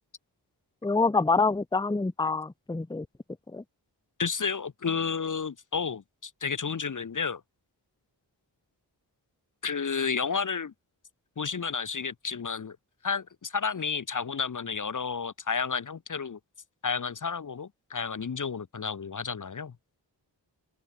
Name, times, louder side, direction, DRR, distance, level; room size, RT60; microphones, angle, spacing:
voice 1, 0.8-3.1 3.5-3.6, left 4 dB, 10° left, 0.7 m, -26 dB
voice 2, 4.2-7.4 9.6-10.7 11.4-12.8 13.0-16.4 16.8-19.7, left 5 dB, 45° left, 0.8 m, -31 dB
open air
cardioid pair, 40°, 45 cm